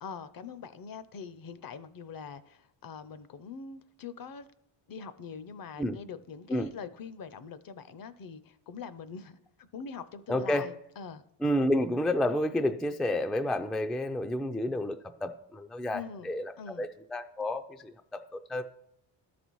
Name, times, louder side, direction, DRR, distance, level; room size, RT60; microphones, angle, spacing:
voice 1, 0.0-4.5 4.9-11.2 15.9-16.3 16.6-16.8, left 6 dB, 50° left, 14 dB, 0.6 m, -43 dB
voice 2, 10.3-10.7 11.4-18.6, left 1 dB, ahead, 7 dB, 0.3 m, -30 dB
12.5 x 4.2 x 4.6 m, 0.79 s
cardioid pair, 90°, 47 cm